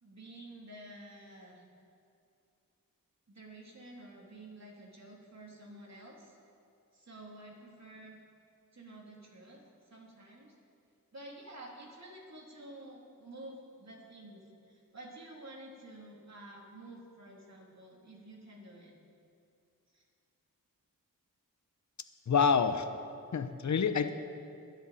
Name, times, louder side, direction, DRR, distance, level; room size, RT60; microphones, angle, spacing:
voice 1, 0.0-1.6 3.3-6.4 6.9-8.2 8.7-10.5 11.1-18.9 19.9-20.0, right 1 dB, 50° right, -2 dB, 3.1 m, -50 dB
voice 2, 22.3-22.9 23.3-24.1, left 6 dB, 55° left, 10 dB, 0.8 m, -27 dB
20.5 x 10.5 x 4.2 m, 2.5 s
wide cardioid pair, 75°, 34 cm